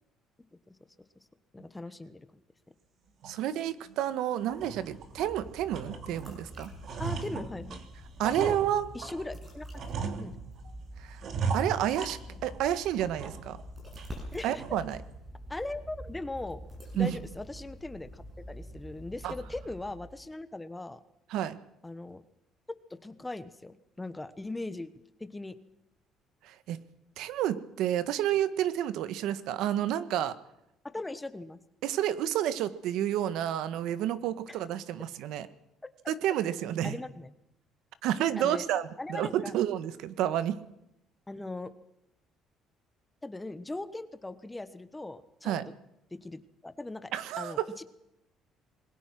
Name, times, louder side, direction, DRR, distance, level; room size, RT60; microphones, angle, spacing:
voice 1, 1.5-2.3 7.0-7.8 8.2-8.6 8.9-9.8 10.2-10.3 14.3-14.8 15.5-16.6 16.9-21.0 21.8-22.2 22.9-24.9 25.2-25.6 30.8-31.6 34.5-34.6 36.8-37.3 38.4-38.7 39.0-39.5 41.3-41.7 43.2-45.7 46.1-47.1 47.4-47.8, left 2 dB, 10° left, 12 dB, 1.2 m, -39 dB
sound 1, 3.2-3.4 3.9-4.0 4.4-5.3 5.7-6.3 6.6-9.3 9.7-10.7 11.2-12.7 13.0-13.6 14.0-14.1 14.6-14.9, right 5 dB, 45° right, 2.8 m, -37 dB
voice 2, 3.2-6.7 8.2-8.9 11.0-11.2 11.5-13.6 14.4-15.0 17.0-17.2 19.2-19.3 21.3-21.6 26.4-26.8 27.2-30.3 31.8-35.5 36.1-37.0 38.0-40.6 45.4-45.7 47.1-47.6, right 11 dB, 75° right, 13 dB, 1.6 m, -30 dB
sound 2, 4.4-20.3, equal, 15° right, 7.6 m, -46 dB
27.5 x 21.5 x 6.1 m, 0.82 s
cardioid pair, 165°, 0 cm